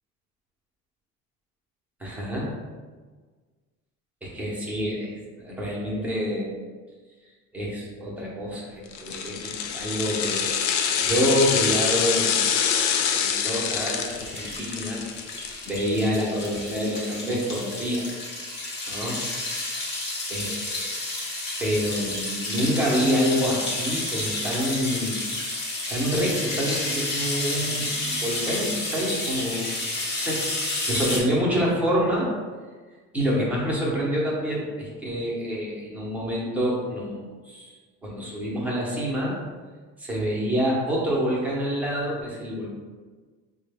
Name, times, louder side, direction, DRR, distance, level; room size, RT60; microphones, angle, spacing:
voice 1, 2.0-2.5 4.2-6.5 7.5-12.5 12.9-15.0 15.7-18.1 18.9-19.2 20.3-20.9 21.6-25.1 25.9-29.7 30.1-32.3 33.1-37.7 38.0-39.4 40.0-42.7, equal, 5° right, -5 dB, 0.7 m, -27 dB
sound 1, 8.9-16.2 16.6-16.7, left 7 dB, 70° left, 0.4 m, -26 dB
sound 2, 13.6-31.2, left 2 dB, 40° left, 0.9 m, -31 dB
4.4 x 2.2 x 3.3 m, 1.4 s
cardioid pair, 165°, 29 cm